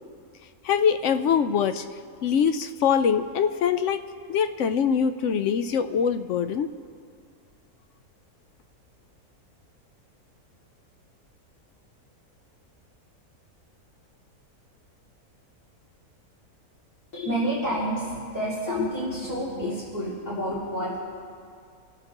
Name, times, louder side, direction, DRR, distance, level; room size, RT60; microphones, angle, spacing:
voice 1, 0.6-1.8 2.2-4.0 4.3-6.7, left 7 dB, 65° left, 9 dB, 0.7 m, -23 dB
voice 2, 17.1-21.0, equal, 85° left, -8 dB, 3.1 m, -29 dB
28.0 x 13.0 x 2.9 m, 2.2 s
omnidirectional pair, 1.6 m